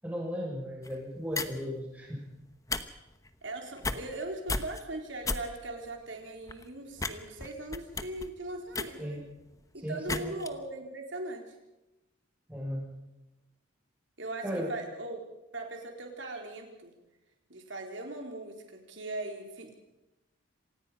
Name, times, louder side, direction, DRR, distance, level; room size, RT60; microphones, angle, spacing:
voice 1, 0.0-2.3 9.0-9.2 9.8-10.3 12.5-12.9 14.4-14.7, equal, 5° right, -2 dB, 7.3 m, -36 dB
sound 1, 0.8-1.0 1.3-1.6 2.5-2.8 3.1-3.3 3.8-4.2 4.5-4.8 5.2-5.4 5.8-5.9 6.5-6.7 7.0-7.1 7.4-9.6 10.1-10.5, left 3 dB, 15° left, 1.0 m, -33 dB
voice 2, 3.4-9.2 9.7-11.4 14.2-14.4 14.7-15.2 15.5-16.9 17.5-19.8, right 2 dB, 65° right, 3 dB, 4.1 m, -39 dB
26.5 x 18.0 x 5.8 m, 0.98 s
head